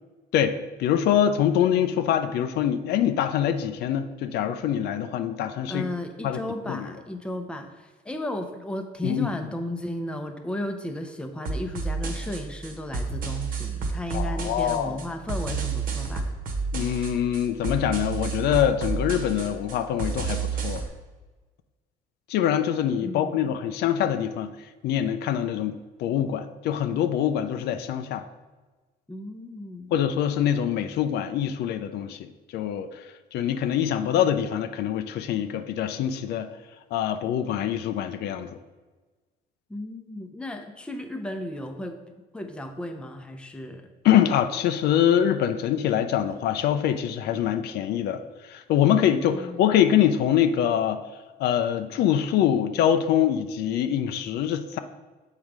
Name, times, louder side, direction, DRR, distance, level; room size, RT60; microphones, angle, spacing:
voice 1, 0.3-5.9 6.2-6.4 6.7-6.9 9.0-9.3 14.1-15.0 16.7-20.8 22.3-24.5 24.8-28.2 29.9-33.0 33.3-36.5 36.9-38.5 44.0-51.0 51.4-54.8, left 10 dB, 75° left, 9 dB, 0.5 m, -24 dB
voice 2, 5.7-16.3 23.0-23.5 29.1-30.0 39.7-42.0 42.3-43.9 49.3-49.8, left 1 dB, 5° left, 5 dB, 0.7 m, -34 dB
sound 1, 11.4-20.9, right 4 dB, 55° right, 1.2 m, -31 dB
7.4 x 3.8 x 4.7 m, 1.3 s
cardioid pair, 110°, 17 cm